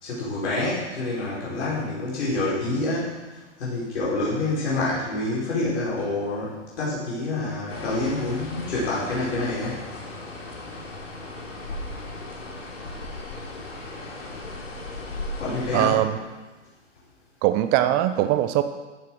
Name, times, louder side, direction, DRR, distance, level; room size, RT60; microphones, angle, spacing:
voice 1, 0.0-3.1 3.6-6.5 6.8-9.8 15.4-15.9, left 2 dB, 70° left, -7 dB, 5.0 m, -27 dB
sound 1, 7.7-16.0, left 2 dB, 90° left, 3.2 m, -36 dB
voice 2, 15.7-16.2 17.4-18.6, right 13 dB, 25° right, 10 dB, 0.6 m, -21 dB
14.0 x 7.5 x 6.2 m, 1.2 s
hypercardioid pair, 130°, 37 cm